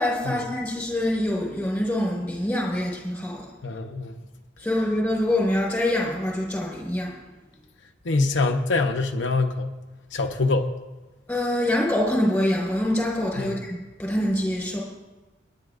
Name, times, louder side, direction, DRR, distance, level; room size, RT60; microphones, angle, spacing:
voice 1, 0.0-3.5 4.6-7.2 11.3-13.6 14.0-14.8, left 1 dB, 5° left, -4 dB, 4.4 m, -25 dB
voice 2, 3.6-4.2 8.0-9.7 10.1-10.7 13.4-13.6, left 3 dB, 65° left, 3 dB, 0.8 m, -24 dB
29.0 x 10.5 x 2.5 m, 1.2 s
head